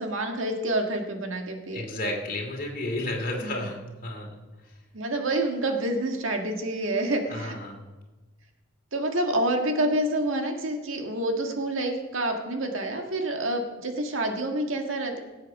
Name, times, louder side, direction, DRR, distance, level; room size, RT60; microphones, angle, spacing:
voice 1, 0.0-1.9 3.4-3.8 4.9-7.5 8.9-15.2, right 1 dB, 75° right, 4 dB, 1.7 m, -28 dB
voice 2, 1.7-4.7 7.3-7.9, left 1 dB, 45° left, 0 dB, 2.5 m, -33 dB
18.0 x 8.0 x 5.3 m, 1.2 s
head